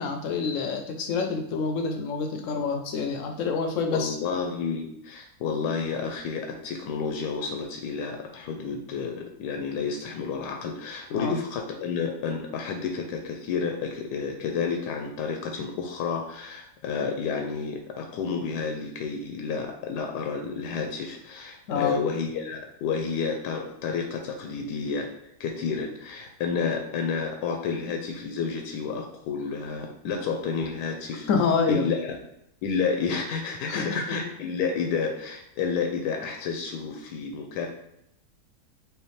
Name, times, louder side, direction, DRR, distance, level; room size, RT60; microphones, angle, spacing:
voice 1, 0.0-4.2 11.1-11.3 21.7-21.9 31.3-31.8 33.7-34.2, left 5 dB, 70° left, 4 dB, 0.7 m, -27 dB
voice 2, 3.9-25.1 25.4-31.3 31.7-32.2 32.6-37.7, left 5 dB, 85° left, 3 dB, 1.2 m, -30 dB
4.8 x 2.6 x 3.2 m, 0.79 s
omnidirectional pair, 1.8 m